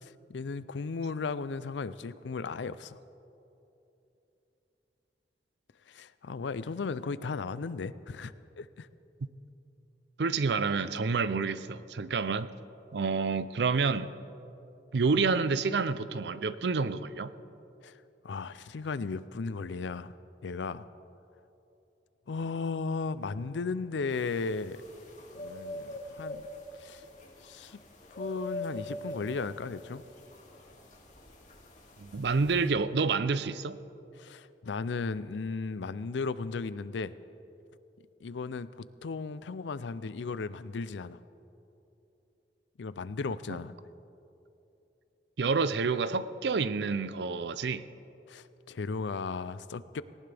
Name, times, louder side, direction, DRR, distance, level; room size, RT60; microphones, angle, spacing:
voice 1, 0.0-3.0 5.9-8.9 17.8-20.1 20.4-20.9 22.3-24.8 25.3-26.4 26.8-27.0 27.4-27.8 28.2-30.0 34.2-37.1 38.2-41.2 42.8-43.7 48.3-50.0, left 4 dB, 85° left, 16 dB, 0.5 m, -36 dB
voice 2, 10.2-12.5 12.9-14.1 14.9-17.3 32.0-33.8 45.4-47.8, right 4 dB, 70° right, 14 dB, 0.5 m, -28 dB
sound 1, 24.1-32.7, left 1 dB, 45° left, 2.4 m, -44 dB
18.5 x 18.0 x 3.4 m, 2.9 s
head